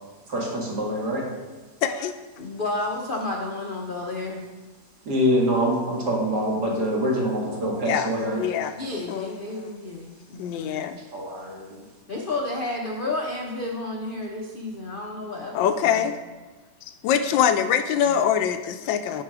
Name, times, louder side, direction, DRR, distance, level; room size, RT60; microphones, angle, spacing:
voice 1, 0.3-1.3 5.0-8.4 11.1-11.8, equal, 60° right, -3 dB, 2.3 m, -25 dB
voice 2, 1.8-2.1 7.9-8.1 8.4-8.7 9.1-9.7 10.4-11.0 15.5-16.2 17.0-19.2, left 8 dB, 85° left, 9 dB, 1.3 m, -24 dB
voice 3, 2.4-4.4 8.8-10.8 12.1-16.1 18.0-18.2, left 2 dB, 50° left, 0 dB, 0.6 m, -31 dB
9.8 x 4.7 x 4.8 m, 1.2 s
omnidirectional pair, 2.0 m